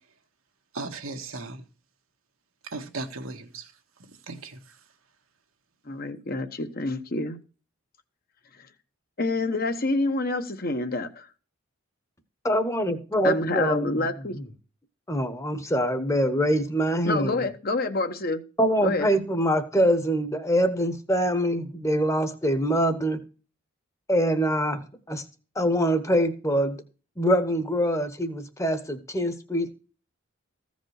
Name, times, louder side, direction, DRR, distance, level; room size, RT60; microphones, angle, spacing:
voice 1, 0.7-1.7 2.6-3.7 4.3-4.6, right 3 dB, 75° right, 1.6 m, -36 dB
voice 2, 5.9-7.4 9.2-11.3 13.2-14.4 17.0-18.4 18.8-19.1, left 2 dB, 45° left, 1.0 m, -27 dB
voice 3, 12.4-14.0 14.3-14.4 15.1-17.4 18.6-23.2 24.1-24.8 25.1-25.2 25.5-26.8 27.2-29.7, equal, 15° left, 1.1 m, -24 dB
15.0 x 5.2 x 6.5 m
head